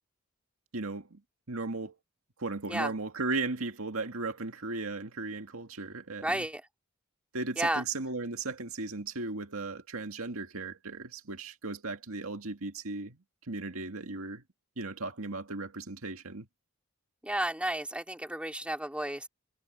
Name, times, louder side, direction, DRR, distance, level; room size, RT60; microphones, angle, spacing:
voice 1, 0.7-1.2 1.5-2.0 2.4-6.4 7.3-13.2 13.5-14.4 14.8-16.5, right 3 dB, 75° right, 2.0 m, -36 dB
voice 2, 6.2-6.6 7.6-7.8 17.2-19.3, right 1 dB, 5° right, 3.3 m, -32 dB
head